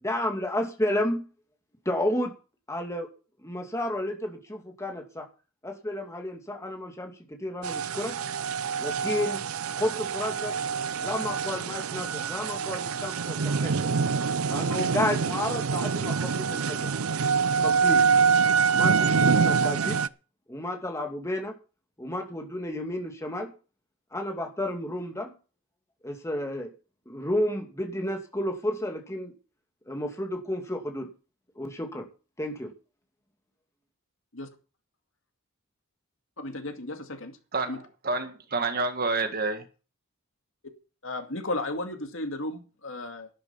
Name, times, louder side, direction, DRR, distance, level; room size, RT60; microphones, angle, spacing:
voice 1, 0.0-1.3 1.9-2.3 2.7-3.1 3.4-5.3 5.6-8.1 8.8-9.5 9.7-10.6 11.0-13.9 14.5-16.9 17.6-18.1 18.7-20.0 20.5-21.5 22.0-23.5 24.1-25.3 26.0-26.7 27.1-29.3 29.9-31.1 31.6-32.1 32.4-32.7, left 1 dB, 15° left, 2.5 m, -31 dB
sound 1, 7.6-20.1, right 5 dB, 90° right, 0.6 m, -25 dB
voice 2, 36.4-37.3 37.6-37.8 41.0-43.3, left 2 dB, 65° left, 2.4 m, -34 dB
voice 3, 37.5-39.6, right 3 dB, 45° right, 1.9 m, -29 dB
12.0 x 11.5 x 5.8 m
head